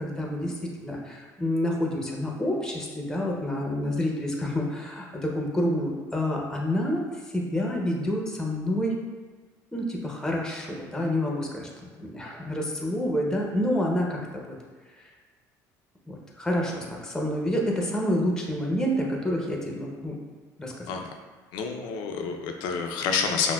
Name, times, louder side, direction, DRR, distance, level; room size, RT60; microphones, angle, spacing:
voice 1, 0.0-7.0 7.3-8.9 9.7-14.5 15.0-15.1 16.1-20.2 20.6-21.0, left 1 dB, 5° left, -1 dB, 0.7 m, -28 dB
voice 2, 21.5-23.5, left 5 dB, 80° left, 4 dB, 0.4 m, -28 dB
5.8 x 2.1 x 2.3 m, 1.3 s
supercardioid pair, 95°, 8 cm